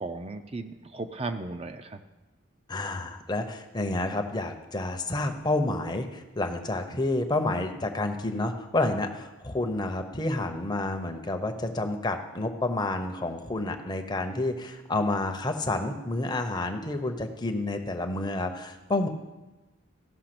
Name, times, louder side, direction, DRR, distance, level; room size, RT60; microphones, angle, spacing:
voice 1, 0.0-2.0, right 3 dB, 25° right, 8 dB, 0.5 m, -35 dB
voice 2, 2.7-19.1, left 2 dB, 20° left, 5 dB, 0.7 m, -29 dB
14.5 x 5.8 x 6.0 m, 1.1 s
head